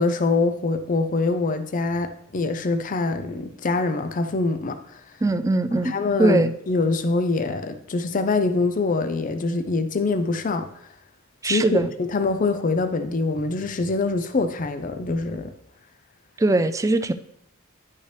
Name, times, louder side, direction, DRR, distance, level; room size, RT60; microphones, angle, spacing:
voice 1, 0.0-5.0 5.8-10.7 11.4-15.5, left 3 dB, 40° left, 9 dB, 0.5 m, -24 dB
voice 2, 5.2-6.5 11.4-11.9 16.4-17.1, right 2 dB, 15° right, 11 dB, 0.3 m, -21 dB
10.0 x 5.5 x 3.3 m, 0.74 s
head